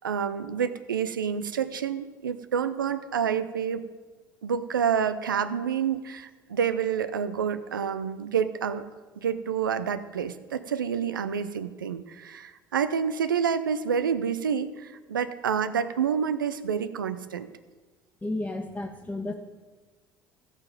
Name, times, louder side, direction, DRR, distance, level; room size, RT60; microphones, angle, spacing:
voice 1, 0.0-3.8 4.4-8.8 9.2-17.5, right 7 dB, 85° right, 12 dB, 0.6 m, -28 dB
voice 2, 18.2-19.3, left 2 dB, 15° left, 0 dB, 1.3 m, -32 dB
16.0 x 5.9 x 5.2 m, 1.3 s
hypercardioid pair, 60°, 11 cm